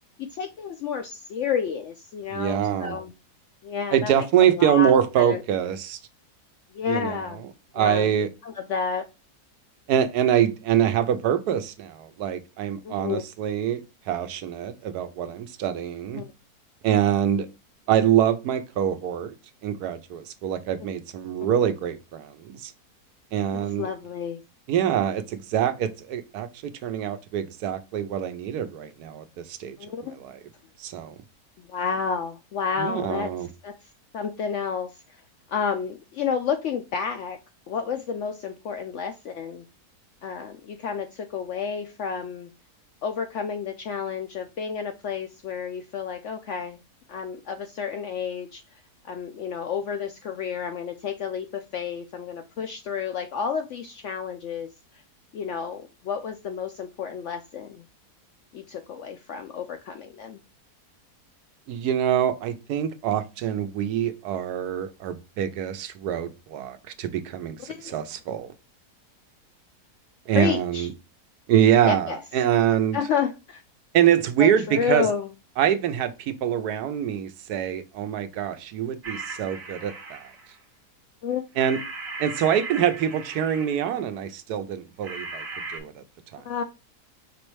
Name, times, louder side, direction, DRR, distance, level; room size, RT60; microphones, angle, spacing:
voice 1, 0.2-3.1 3.6-5.4 6.7-7.4 7.8-8.1 8.4-9.0 12.8-13.2 16.2-16.3 23.8-24.4 29.8-30.1 31.7-33.3 33.6-33.8 34.1-34.9 35.5-37.4 37.7-39.6 40.2-42.5 43.0-46.8 47.1-48.6 49.1-54.7 55.3-57.8 58.5-60.4 67.7-68.0 70.3-70.9 71.8-72.2 72.9-73.6 74.4-75.3 81.2-81.4 86.4-86.6, left 6 dB, 70° left, 0.7 m, -30 dB
voice 2, 2.3-3.0 3.9-6.0 6.9-7.2 7.7-8.3 9.9-13.8 14.1-16.2 16.8-17.5 17.9-19.3 19.6-22.7 23.3-23.9 24.7-26.5 26.8-29.8 30.1-30.4 30.8-31.1 32.8-33.5 61.7-68.5 70.3-70.9 71.5-73.0 73.9-75.1 75.6-80.3 81.6-81.8 82.2-85.4 85.7-86.0 86.3-86.4, right 10 dB, 80° right, 1.1 m, -24 dB
sound 1, 79.0-80.6 81.6-84.0 85.0-85.8, right 3 dB, 45° right, 1.1 m, -37 dB
5.1 x 3.1 x 3.1 m
omnidirectional pair, 1.7 m